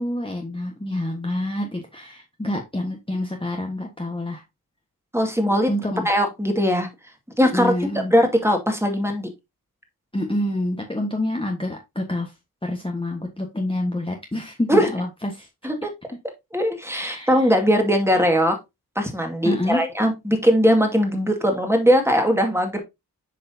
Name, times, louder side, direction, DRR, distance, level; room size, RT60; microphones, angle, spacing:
voice 1, 0.0-4.4 5.7-6.1 7.5-8.1 10.1-12.3 12.6-15.5 16.9-17.3 19.4-19.9, left 1 dB, 15° left, 1.4 m, -27 dB
voice 2, 5.1-5.7 6.0-6.9 7.4-7.7 8.1-9.3 14.7-14.9 15.6-15.9 16.5-18.6 19.0-22.8, equal, 5° right, 2.1 m, -20 dB
8.1 x 4.9 x 2.8 m
cardioid pair, 50°, 38 cm